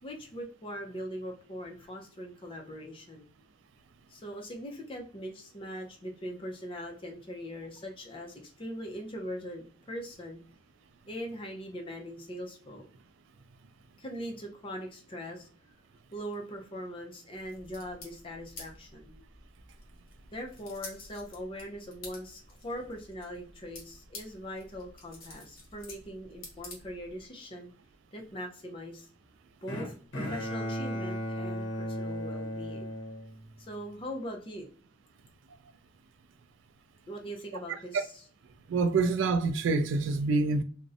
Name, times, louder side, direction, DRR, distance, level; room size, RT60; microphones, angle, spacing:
voice 1, 0.0-3.3 4.1-10.4 11.1-12.9 14.0-15.5 16.1-19.1 20.3-27.7 28.1-29.1 29.6-32.9 33.6-34.7 37.1-38.1, equal, 30° left, 0.5 m, -41 dB
sound 1, 17.3-27.3, left 3 dB, 50° left, 0.9 m, -50 dB
Bowed string instrument, 29.7-33.9, equal, 80° left, 0.7 m, -36 dB
voice 2, 38.7-40.6, right 3 dB, 75° right, 0.3 m, -26 dB
2.5 x 2.0 x 2.6 m
head